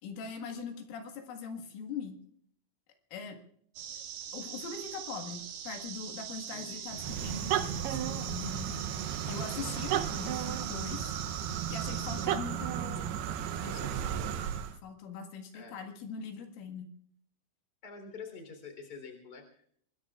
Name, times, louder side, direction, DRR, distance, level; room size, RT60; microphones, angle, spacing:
voice 1, 0.0-2.2 3.1-3.4 4.3-8.8 9.3-11.1 11.7-13.2 13.6-14.1 14.8-16.9, left 5 dB, 80° left, 4 dB, 4.3 m, -42 dB
sound 1, 3.8-12.3, right 8 dB, 55° right, 3.3 m, -42 dB
voice 2, 6.5-6.9 13.7-14.5 15.5-15.8 17.8-19.7, left 5 dB, 25° left, 5 dB, 3.5 m, -47 dB
sound 2, 6.9-14.8, right 10 dB, 85° right, 2.2 m, -34 dB
25.5 x 21.5 x 2.5 m, 0.62 s
omnidirectional pair, 5.7 m